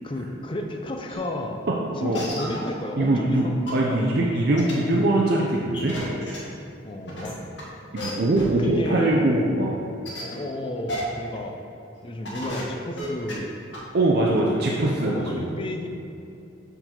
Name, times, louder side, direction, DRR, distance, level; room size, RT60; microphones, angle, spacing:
voice 1, 0.0-1.6 2.0-4.6 6.8-7.6 8.6-9.2 10.2-11.6 12.0-13.6 14.4-15.9, left 1 dB, 25° left, 3 dB, 0.5 m, -32 dB
sound 1, 1.1-1.2 1.6-1.7 2.1-2.7 3.3-3.4 3.7-3.8 4.6-4.7 5.7-6.4 7.1-7.6 8.0-8.1 8.3-8.6 9.1-9.2 10.1-10.3 10.9-11.0 11.4-11.5 12.0-12.1 12.2-12.6 12.9-13.3 13.7-13.8, left 1 dB, 65° left, 1.4 m, -33 dB
voice 2, 3.0-6.0 7.9-9.8 13.9-15.5, right 2 dB, 55° right, -2 dB, 0.5 m, -22 dB
6.7 x 4.0 x 4.4 m, 2.7 s
head